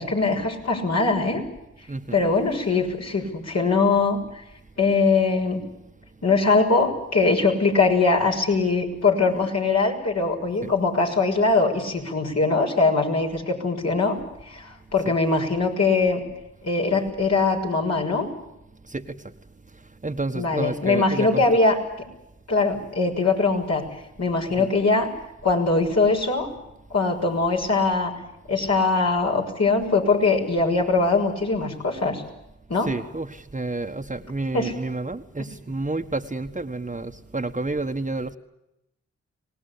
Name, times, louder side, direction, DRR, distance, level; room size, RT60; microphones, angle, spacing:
voice 1, 0.0-1.4 2.1-4.4 4.8-5.6 6.2-14.2 14.5-16.2 16.6-18.3 20.3-21.8 22.5-23.8 24.2-25.1 25.4-26.5 26.9-28.1 28.5-32.2 32.7-32.9 34.5-34.7, left 3 dB, 60° left, 0 dB, 6.4 m, -22 dB
voice 2, 1.9-2.3 10.6-10.7 15.0-15.2 18.8-19.3 19.7-21.6 24.5-24.7 32.8-38.4, right 2 dB, 25° right, 7 dB, 1.6 m, -30 dB
25.0 x 19.0 x 8.6 m, 0.88 s
supercardioid pair, 40°, 29 cm